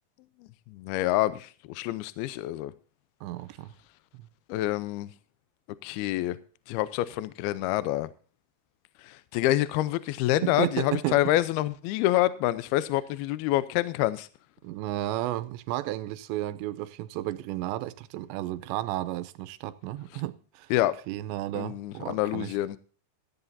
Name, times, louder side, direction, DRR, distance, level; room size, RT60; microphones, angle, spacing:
voice 1, 0.7-2.7 4.5-5.1 5.8-6.4 6.7-8.1 9.0-14.3 20.7-21.0 21.6-22.8, left 15 dB, 80° left, 2.3 m, -27 dB
voice 2, 3.2-3.7 4.2-4.3 10.4-11.2 14.6-20.7 21.1-22.5, right 15 dB, 85° right, 3.0 m, -33 dB
17.0 x 14.0 x 2.7 m
omnidirectional pair, 5.1 m